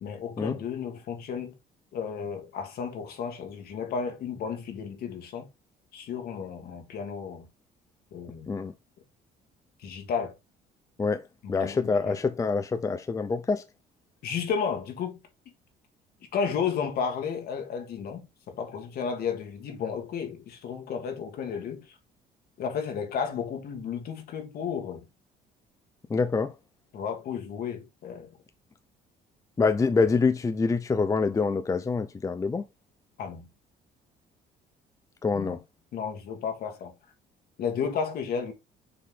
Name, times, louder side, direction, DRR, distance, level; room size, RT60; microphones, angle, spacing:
voice 1, 0.0-1.5 1.9-5.5 5.9-7.5 8.1-8.5 9.8-10.3 11.4-12.0 14.2-15.2 16.3-21.8 22.6-25.0 26.9-28.3 33.2-33.5 35.3-35.6 35.9-36.9 37.6-38.5, left 6 dB, 65° left, 1.9 m, -33 dB
voice 2, 11.5-13.6 26.1-26.5 29.6-32.6 35.2-35.6, left 4 dB, 20° left, 0.5 m, -26 dB
6.7 x 3.7 x 3.8 m
cardioid pair, 110°, 17 cm